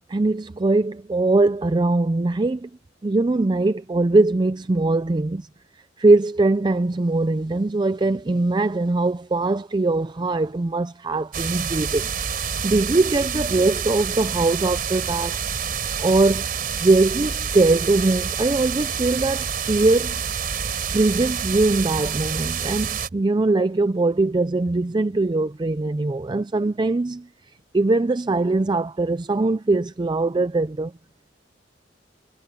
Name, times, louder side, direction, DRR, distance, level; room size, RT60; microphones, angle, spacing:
voice 1, 0.1-2.7 3.0-5.5 6.0-12.1 12.6-15.4 16.0-16.5 16.8-20.1 20.9-27.2 27.7-30.9, right 2 dB, 25° right, 0.4 m, -21 dB
sound 1, 11.3-23.1, right 7 dB, 55° right, 4.1 m, -28 dB
head